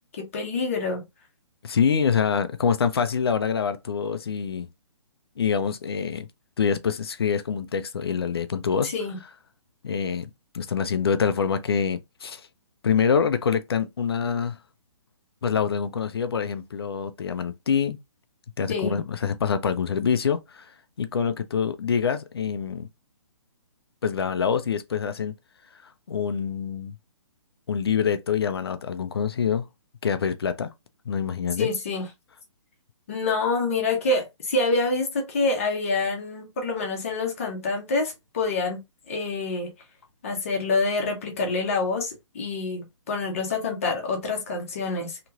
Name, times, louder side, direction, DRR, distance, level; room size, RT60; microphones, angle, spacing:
voice 1, 0.2-1.0 8.9-9.2 18.7-19.0 31.6-32.0 33.1-38.8 39.1-39.7 40.2-45.2, left 3 dB, 25° left, 0.8 m, -27 dB
voice 2, 1.6-4.7 5.4-6.3 6.6-8.9 9.8-12.5 12.8-14.6 15.4-18.0 18.6-20.7 21.0-22.9 24.0-25.3 26.1-27.0 27.7-29.6 30.0-30.7 31.1-31.7, left 6 dB, 55° left, 0.4 m, -25 dB
3.0 x 2.9 x 2.4 m
hypercardioid pair, 180°, 16 cm